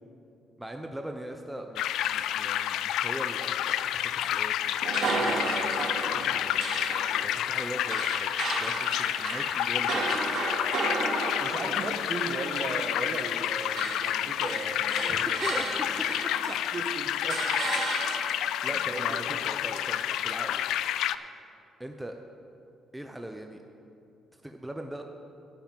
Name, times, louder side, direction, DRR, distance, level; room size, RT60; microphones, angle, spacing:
voice 1, 0.6-4.8 5.2-6.4 7.2-8.3 8.5-10.4 15.1-16.1 18.3-20.6 21.8-22.2 22.9-23.6 24.4-25.0, right 1 dB, 5° right, 4 dB, 0.7 m, -40 dB
sound 1, 1.8-21.2, left 11 dB, 85° left, 0.3 m, -29 dB
sound 2, 4.8-13.4 13.7-16.8 17.3-18.5, right 3 dB, 65° right, 2.8 m, -33 dB
voice 2, 11.3-16.0 16.5-17.9 18.6-19.4, right 3 dB, 45° right, 5 dB, 1.3 m, -37 dB
12.0 x 5.6 x 9.0 m, 2.6 s
cardioid pair, 90°, 0 cm